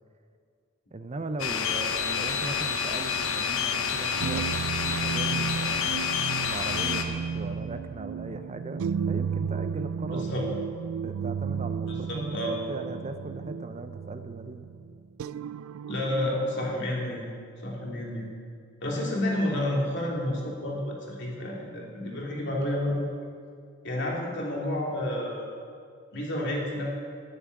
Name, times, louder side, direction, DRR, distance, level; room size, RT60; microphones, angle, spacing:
voice 1, 0.9-6.0 6.5-10.4 11.0-14.7, right 2 dB, 30° right, 8 dB, 0.6 m, -38 dB
sound 1, 1.4-7.0, left 6 dB, 80° left, 1.2 m, -28 dB
sound 2, 4.2-16.7, right 7 dB, 80° right, 0.3 m, -33 dB
voice 2, 10.1-10.4 11.9-12.6 15.9-17.2 17.6-18.3 18.8-23.1 23.8-25.5 26.1-26.9, left 1 dB, 55° left, -2 dB, 3.2 m, -30 dB
9.9 x 9.7 x 9.6 m, 2.2 s
head